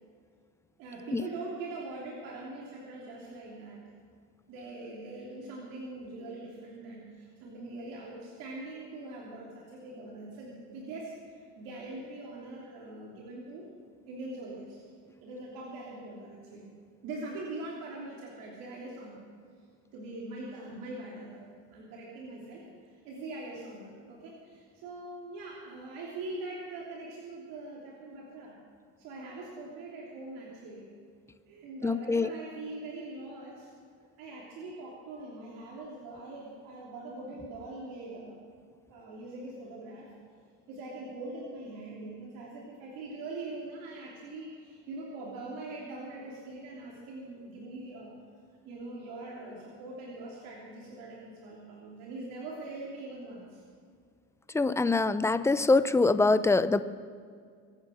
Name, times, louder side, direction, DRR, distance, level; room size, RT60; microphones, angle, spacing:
voice 1, 0.8-3.8 4.5-13.7 14.1-14.8 15.2-16.7 17.0-19.2 19.9-22.6 23.0-28.6 29.0-30.9 31.5-33.7 34.2-38.5 38.9-40.1 40.7-48.2 48.6-53.6, right 2 dB, 70° right, -3 dB, 3.3 m, -42 dB
voice 2, 31.8-32.3 54.5-56.8, left 3 dB, 10° left, 14 dB, 0.6 m, -24 dB
24.0 x 9.0 x 6.5 m, 2.1 s
supercardioid pair, 105°, 36 cm